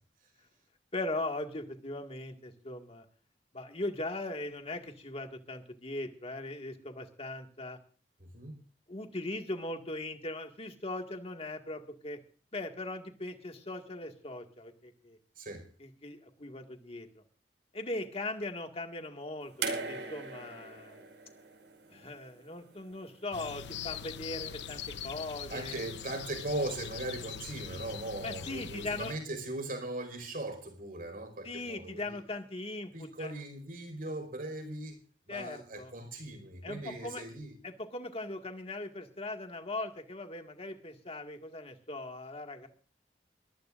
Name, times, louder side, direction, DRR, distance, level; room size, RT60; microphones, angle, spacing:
voice 1, 0.9-3.0 3.5-7.8 8.9-12.2 12.5-15.2 15.8-17.1 17.7-21.0 21.9-25.8 28.2-29.1 31.4-33.3 35.3-35.9 36.6-37.2 37.6-42.7, left 2 dB, 35° left, 2.0 m, -39 dB
voice 2, 8.2-8.6 15.4-15.7 25.5-32.2 32.9-35.0 35.3-37.6, right 2 dB, 55° right, 5.2 m, -39 dB
sound 1, 19.6-22.8 24.0-24.1, right 4 dB, 85° right, 5.4 m, -40 dB
sound 2, 23.3-29.2, left 8 dB, 85° left, 0.9 m, -42 dB
22.5 x 15.0 x 2.6 m
head